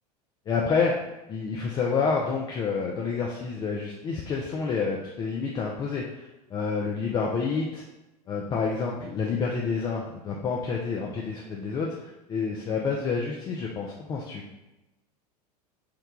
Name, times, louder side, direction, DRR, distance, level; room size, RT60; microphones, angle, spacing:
voice 1, 0.5-7.8 8.3-14.4, left 5 dB, 20° left, -2 dB, 0.4 m, -29 dB
3.1 x 2.2 x 3.6 m, 0.99 s
figure-of-eight pair, 85°, 21 cm